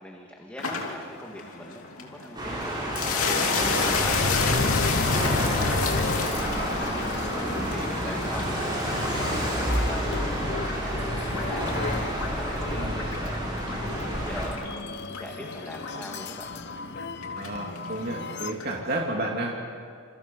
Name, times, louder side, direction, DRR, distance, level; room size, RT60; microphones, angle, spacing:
voice 1, 0.0-11.8 12.2-13.5 14.1-16.5, equal, 5° left, 0 dB, 2.0 m, -42 dB
sound 1, 0.6-18.8, left 5 dB, 80° left, 2.9 m, -34 dB
sound 2, 2.4-14.5, right 1 dB, 20° right, 7.2 m, -29 dB
sound 3, 3.3-18.5, left 3 dB, 55° left, 0.9 m, -33 dB
voice 2, 3.6-4.1 7.4-7.7 12.8-13.0 17.3-19.6, right 2 dB, 45° right, -1 dB, 2.8 m, -32 dB
28.0 x 28.0 x 5.6 m, 2.2 s
head